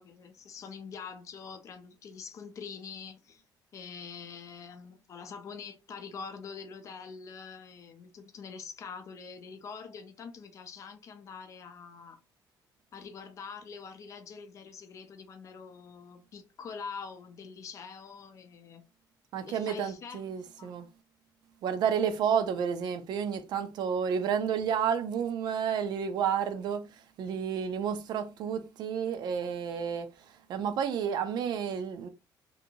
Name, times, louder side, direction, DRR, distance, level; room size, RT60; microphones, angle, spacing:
voice 1, 0.0-3.4 3.7-12.2 12.9-18.8 19.4-20.2 20.6-20.7, left 5 dB, 40° left, 0.5 m, -45 dB
voice 2, 19.3-20.9 21.6-30.1 30.5-32.1, right 7 dB, 65° right, 0.4 m, -31 dB
2.8 x 2.6 x 2.7 m
cardioid pair, 160°, 8 cm